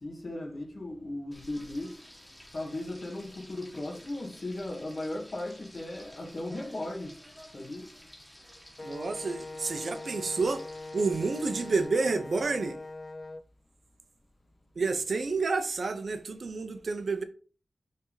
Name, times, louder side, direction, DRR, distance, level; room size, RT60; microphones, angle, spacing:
voice 1, 0.0-2.0 2.5-7.2 7.5-7.9, left 1 dB, 50° left, 2.0 m, -37 dB
Frying (food), 1.3-11.8, equal, 10° left, 1.9 m, -53 dB
Wind instrument woodwind instrument, 8.8-13.4, left 2 dB, 35° left, 0.3 m, -42 dB
voice 2, 8.8-10.6 10.9-12.8 14.8-17.2, right 4 dB, 70° right, 0.8 m, -29 dB
6.4 x 3.7 x 4.0 m
wide cardioid pair, 100°, 0 cm